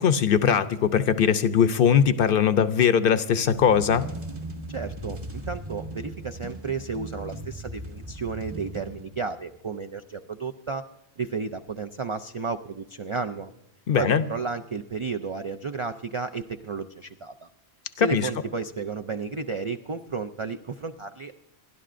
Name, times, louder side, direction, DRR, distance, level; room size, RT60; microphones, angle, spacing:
voice 1, 0.0-4.1 13.9-14.2 18.0-18.3, left 8 dB, 60° left, 12 dB, 0.7 m, -21 dB
sound 1, 3.4-9.4, right 1 dB, 40° right, 1.8 m, -38 dB
voice 2, 4.7-10.8 11.2-13.5 14.0-17.5 18.0-21.3, right 5 dB, 55° right, 7 dB, 0.3 m, -32 dB
28.0 x 11.5 x 2.5 m, 0.87 s
omnidirectional pair, 1.1 m